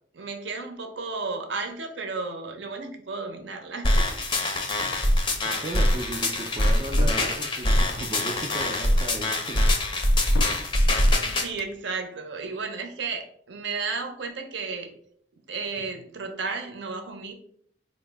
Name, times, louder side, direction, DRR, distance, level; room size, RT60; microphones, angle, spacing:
voice 1, 0.1-4.2 11.2-14.9 15.5-17.3, right 4 dB, 70° right, 5 dB, 0.6 m, -33 dB
sound 1, 3.8-11.5, left 1 dB, 25° left, 0.5 m, -23 dB
voice 2, 4.8-5.1 5.4-9.7 15.8-15.9, right 2 dB, 30° right, 4 dB, 0.3 m, -36 dB
sound 2, 6.7-7.3 8.4-8.8 9.8-10.7 11.4-11.8, left 5 dB, 90° left, 0.3 m, -38 dB
4.1 x 2.0 x 3.3 m, 0.64 s
head